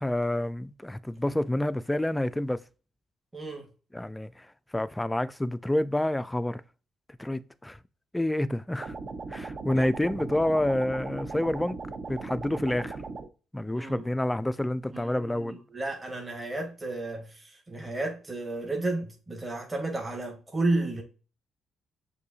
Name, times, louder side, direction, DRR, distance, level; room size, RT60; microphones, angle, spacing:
voice 1, 0.0-2.6 3.9-4.5 4.7-6.6 7.2-7.8 8.1-9.0 9.3-11.8 12.1-13.0 13.5-15.6, left 1 dB, 10° left, 0.3 m, -28 dB
voice 2, 3.3-3.7 9.6-10.0 13.7-14.0 14.9-21.0, right 2 dB, 20° right, 1.4 m, -32 dB
sound 1, 8.8-13.3, right 3 dB, 50° right, 0.6 m, -38 dB
6.6 x 2.8 x 2.7 m
cardioid pair, 90°, 0 cm